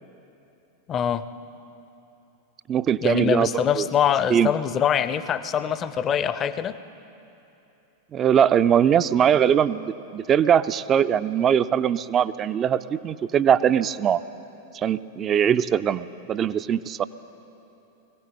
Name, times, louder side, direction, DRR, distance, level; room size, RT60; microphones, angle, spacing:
voice 1, 0.9-1.3 3.0-6.8, left 8 dB, 30° left, 14 dB, 0.5 m, -24 dB
voice 2, 2.7-3.5 3.8-3.9 4.3-4.5 8.1-14.2 14.7-17.0, right 8 dB, 25° right, 15 dB, 0.4 m, -21 dB
22.5 x 16.5 x 3.8 m, 3.0 s
figure-of-eight pair, 90°, 0 cm